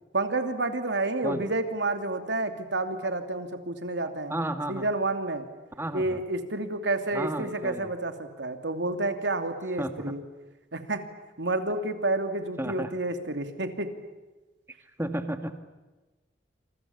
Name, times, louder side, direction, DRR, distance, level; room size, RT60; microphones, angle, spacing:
voice 1, 0.1-4.3 4.7-5.5 5.9-10.2 10.7-11.1 11.4-13.9, right 2 dB, 90° right, 7 dB, 2.9 m, -29 dB
voice 2, 4.3-4.9 5.8-6.2 7.1-7.9 9.8-9.9 12.6-12.9 15.0-15.5, right 1 dB, 15° right, 8 dB, 2.0 m, -32 dB
29.0 x 27.5 x 7.3 m, 1.2 s
head